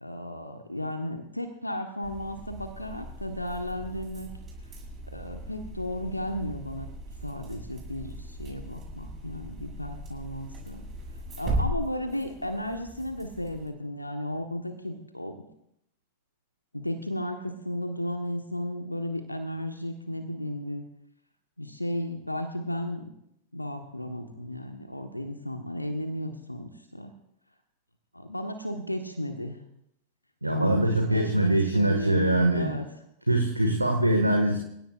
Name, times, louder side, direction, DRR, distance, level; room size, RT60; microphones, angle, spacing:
voice 1, 0.0-4.3 5.1-6.9 7.2-10.8 11.4-15.4 16.7-20.8 21.6-23.1 23.5-27.1 28.1-29.6 30.5-32.9, left 1 dB, 85° left, 6 dB, 1.2 m, -34 dB
sound 1, 2.0-13.7, right 1 dB, 25° right, 7.0 m, -38 dB
voice 2, 30.4-32.7 33.3-34.6, right 1 dB, 85° right, 3 dB, 1.8 m, -23 dB
29.0 x 16.5 x 2.5 m, 0.78 s
figure-of-eight pair, 90°, 0 cm